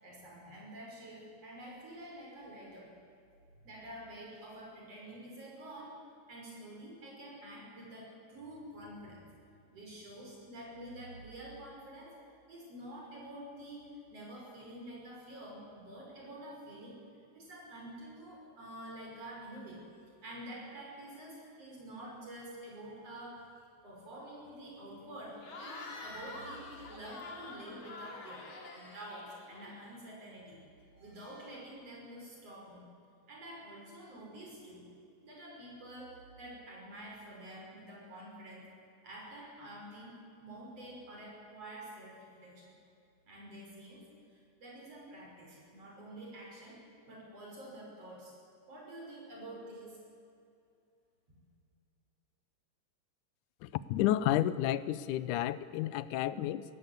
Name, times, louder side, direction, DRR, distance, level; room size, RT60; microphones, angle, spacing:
voice 1, 0.0-2.9 3.6-6.0 6.3-9.3 9.7-12.2 12.5-17.0 17.3-19.9 20.2-23.5 23.8-28.5 28.7-30.6 30.9-32.8 33.3-34.9 35.2-38.7 39.0-42.7 43.2-48.4 48.7-50.0, right 1 dB, 50° right, -2 dB, 6.9 m, -48 dB
Cheering / Crowd, 25.4-30.0, left 3 dB, 45° left, 3.1 m, -47 dB
voice 2, 53.6-56.7, left 13 dB, 85° left, 16 dB, 2.1 m, -31 dB
23.0 x 17.5 x 8.3 m, 2.5 s
omnidirectional pair, 3.5 m